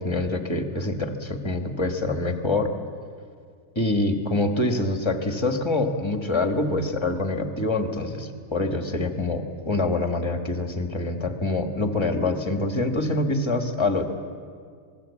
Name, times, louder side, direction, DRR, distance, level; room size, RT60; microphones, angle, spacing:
voice 1, 0.0-2.7 3.8-14.1, left 2 dB, 15° left, 5 dB, 1.7 m, -25 dB
27.0 x 20.0 x 8.5 m, 2.1 s
omnidirectional pair, 1.7 m